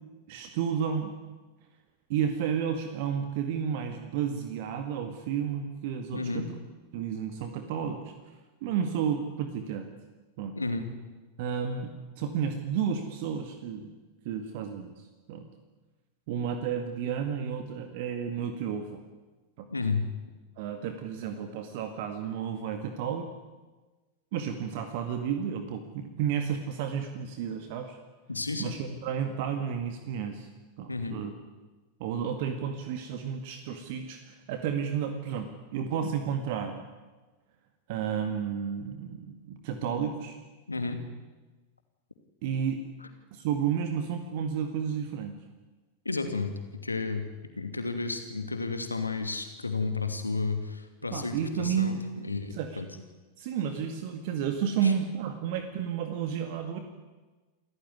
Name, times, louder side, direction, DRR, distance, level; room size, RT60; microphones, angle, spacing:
voice 1, 0.3-1.1 2.1-6.5 6.9-8.1 8.6-9.9 10.4-10.6 11.4-14.0 14.2-15.5 16.3-19.0 19.6-19.7 20.6-23.3 24.3-28.0 28.6-30.5 30.8-31.3 32.0-36.8 37.9-40.4 42.4-42.8 43.3-45.4 51.1-52.0 52.5-52.8 53.4-56.8, right 7 dB, 50° right, 7 dB, 2.0 m, -32 dB
voice 2, 6.1-6.5 10.5-10.9 19.7-20.0 28.3-28.8 30.9-31.2 40.7-41.0 46.0-47.2 47.6-52.9 54.8-54.9, left 3 dB, 80° left, 7 dB, 2.7 m, -32 dB
28.5 x 14.5 x 9.6 m, 1.2 s
figure-of-eight pair, 90°, 0 cm